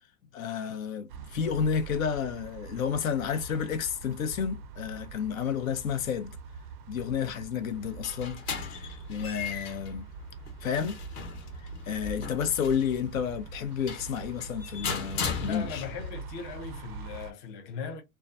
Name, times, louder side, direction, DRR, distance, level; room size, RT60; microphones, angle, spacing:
voice 1, 0.3-6.3 6.9-10.1 10.6-11.0 11.6-15.8, left 7 dB, 70° left, 0.7 m, -31 dB
sound 1, 1.1-17.3, right 5 dB, 40° right, 0.4 m, -43 dB
sound 2, 7.7-16.1, left 6 dB, 45° left, 1.0 m, -38 dB
voice 2, 15.3-18.0, left 6 dB, 25° left, 0.4 m, -38 dB
2.3 x 2.2 x 2.4 m
hypercardioid pair, 120°, 42 cm